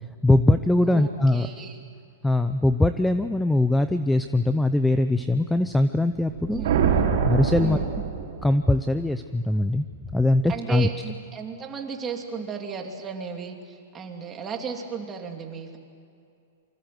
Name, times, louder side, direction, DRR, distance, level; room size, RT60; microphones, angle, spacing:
voice 1, 0.2-1.5 2.2-6.6 7.3-7.8 8.4-9.8 10.1-10.9, left 2 dB, 5° left, 10 dB, 0.6 m, -21 dB
voice 2, 0.9-1.8 6.5-6.7 7.6-7.9 10.5-15.8, right 6 dB, 15° right, 2 dB, 3.1 m, -34 dB
sound 1, 6.2-8.7, right 7 dB, 65° right, 4.6 m, -24 dB
27.5 x 25.0 x 7.9 m, 2.5 s
hypercardioid pair, 155°, 0 cm